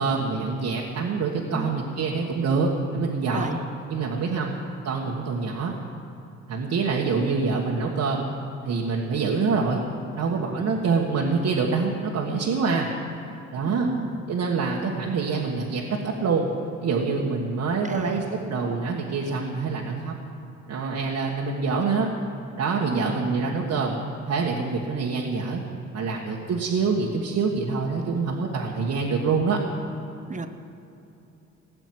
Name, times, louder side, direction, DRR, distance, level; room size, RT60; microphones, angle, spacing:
voice 1, 0.0-3.6 3.9-4.5 4.8-5.7 6.5-8.3 8.6-9.8 10.2-12.9 13.5-13.9 14.3-16.5 16.8-20.1 20.7-22.1 22.6-24.0 24.2-25.6 25.9-29.6, right 4 dB, 65° right, -3 dB, 1.6 m, -25 dB
voice 2, 13.7-14.2 17.9-18.2 22.9-23.3 30.3-30.5, right 3 dB, 25° right, 8 dB, 1.0 m, -32 dB
17.0 x 7.0 x 9.6 m, 2.7 s
cardioid pair, 90°, 30 cm